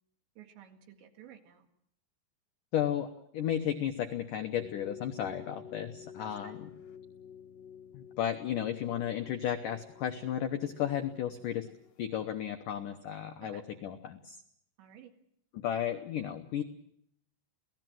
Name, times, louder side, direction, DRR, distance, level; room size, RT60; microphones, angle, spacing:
voice 1, 0.4-1.7 6.2-6.6 13.4-13.7 14.8-15.1, right 10 dB, 75° right, 5 dB, 4.2 m, -53 dB
voice 2, 2.7-6.7 7.9-11.7 12.0-14.4 15.5-16.6, left 10 dB, 80° left, 6 dB, 1.8 m, -34 dB
sound 1, 4.6-12.0, left 8 dB, 65° left, 1.6 m, -51 dB
27.5 x 18.0 x 7.7 m, 0.72 s
omnidirectional pair, 5.3 m